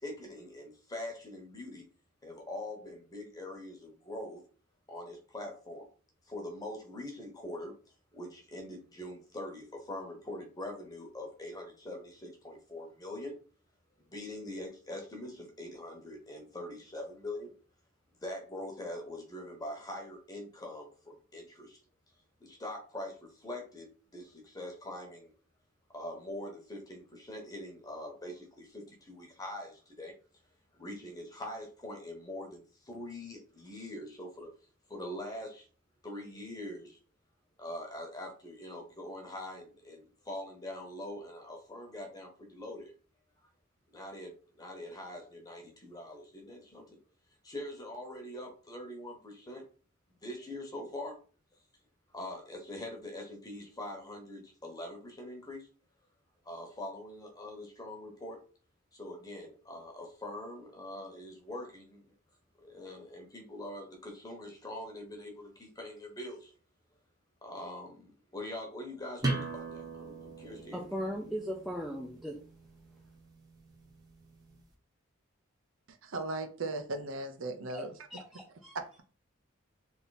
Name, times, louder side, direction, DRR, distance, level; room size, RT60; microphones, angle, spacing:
voice 1, 0.0-1.9 2.2-4.4 4.9-5.9 6.2-7.7 8.1-13.3 14.0-17.5 18.1-21.8 22.4-25.3 25.9-30.1 30.7-34.5 34.9-35.7 36.0-37.0 37.6-42.9 43.9-47.0 47.4-49.6 50.2-51.2 52.1-55.7 56.4-58.4 58.9-62.1 62.6-66.5 67.4-70.9, left 1 dB, 20° left, 1.1 m, -43 dB
sound 1, 69.2-74.6, right 3 dB, 20° right, 0.9 m, -40 dB
voice 2, 70.7-72.4 77.7-77.8 78.1-78.7, equal, ahead, 0.5 m, -38 dB
voice 3, 75.9-77.9 78.7-78.9, right 2 dB, 70° right, 0.7 m, -37 dB
3.5 x 2.8 x 4.1 m
head